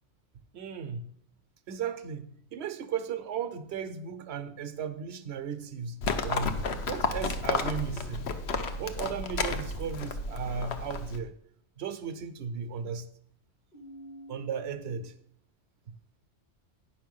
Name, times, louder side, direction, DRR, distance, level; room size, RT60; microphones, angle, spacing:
voice 1, 0.5-1.1 1.7-8.3 8.8-11.3 11.8-13.1 14.3-15.1 15.9-16.0, right 7 dB, 75° right, 10 dB, 1.0 m, -36 dB
Livestock farm animals working animals, 6.0-11.2, left 4 dB, 70° left, 1.0 m, -32 dB
sound 1, 13.7-15.0, equal, 40° left, 1.3 m, -52 dB
9.5 x 5.7 x 5.4 m, 0.68 s
omnidirectional pair, 1.1 m